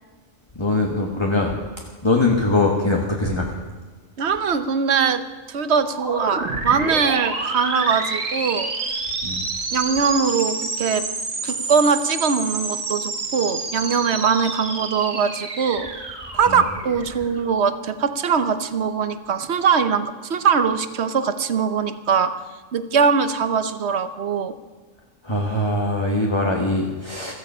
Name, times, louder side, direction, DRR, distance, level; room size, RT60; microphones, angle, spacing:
voice 1, 0.5-1.5 2.0-3.6 9.2-9.4 16.5-16.6 25.2-27.3, left 2 dB, 20° left, 0 dB, 1.5 m, -22 dB
voice 2, 4.2-5.2 5.5-8.7 9.7-11.1 11.4-15.9 16.3-22.3 22.7-24.5, right 6 dB, 60° right, 11 dB, 1.1 m, -21 dB
sound 1, 5.8-17.5, right 3 dB, 80° right, 2.2 m, -29 dB
16.0 x 14.0 x 5.6 m, 1.4 s
omnidirectional pair, 1.4 m